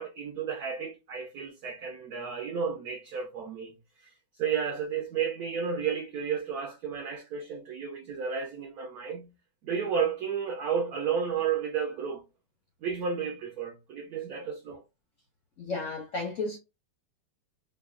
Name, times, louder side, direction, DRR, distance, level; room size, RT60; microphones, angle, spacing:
voice 1, 0.0-4.1 4.4-9.3 9.6-12.2 12.8-14.8, right 7 dB, 70° right, 0.9 m, -32 dB
voice 2, 15.6-16.6, left 3 dB, 60° left, 0.8 m, -33 dB
4.5 x 2.2 x 2.4 m
omnidirectional pair, 2.2 m